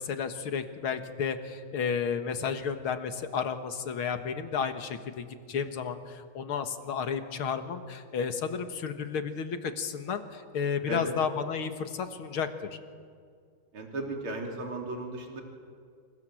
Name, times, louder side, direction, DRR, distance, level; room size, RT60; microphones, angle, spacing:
voice 1, 0.0-12.8, left 6 dB, 70° left, 8 dB, 2.4 m, -32 dB
voice 2, 13.7-15.4, right 2 dB, 70° right, 1 dB, 4.1 m, -35 dB
28.0 x 26.5 x 7.8 m, 2.2 s
omnidirectional pair, 2.4 m